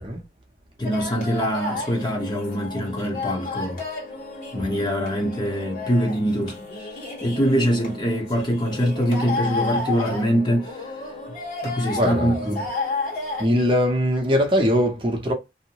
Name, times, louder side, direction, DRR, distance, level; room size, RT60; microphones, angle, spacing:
sound 1, 0.8-13.4, left 3 dB, 50° left, 1.6 m, -32 dB
voice 1, 0.8-3.8 4.5-6.9 7.2-10.9 11.6-12.4, equal, 25° left, 0.8 m, -24 dB
voice 2, 12.0-12.6 13.4-15.3, equal, 30° right, 0.7 m, -21 dB
2.7 x 2.1 x 2.8 m
head